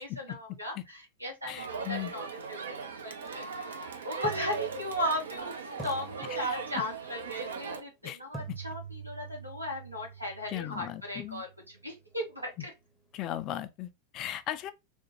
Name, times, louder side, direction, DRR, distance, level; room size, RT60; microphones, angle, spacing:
voice 1, 0.0-2.6 3.0-3.6 4.0-12.7, left 1 dB, 90° right, 0.9 m, -37 dB
voice 2, 1.5-2.1 8.0-8.2 10.5-11.4 13.1-14.7, left 12 dB, 35° left, 0.3 m, -37 dB
Crowd, 1.6-7.8, right 5 dB, 65° right, 0.5 m, -38 dB
sound 1, 3.3-3.4 4.2-5.4 5.8-7.0 8.3-12.3, right 5 dB, ahead, 0.7 m, -46 dB
3.4 x 2.1 x 2.8 m
figure-of-eight pair, 90°, 0 cm